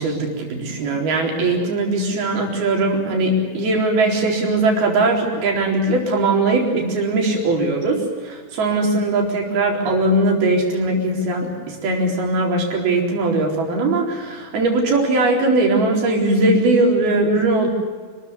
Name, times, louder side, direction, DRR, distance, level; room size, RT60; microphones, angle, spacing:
voice 1, 0.0-17.7, right 2 dB, 85° right, 1 dB, 6.1 m, -20 dB
28.0 x 14.0 x 9.8 m, 1.5 s
omnidirectional pair, 4.3 m